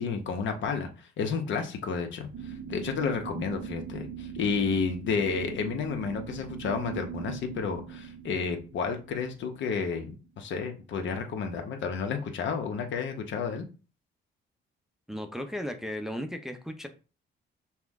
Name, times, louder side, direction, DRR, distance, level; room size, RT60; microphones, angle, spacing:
voice 1, 0.0-13.7, left 5 dB, 70° left, 5 dB, 1.0 m, -31 dB
sound 1, 2.3-10.3, right 8 dB, 75° right, 0.5 m, -41 dB
voice 2, 15.1-16.9, equal, ahead, 5 dB, 0.6 m, -35 dB
5.9 x 2.2 x 3.6 m, 0.34 s
cardioid pair, 90°, 20 cm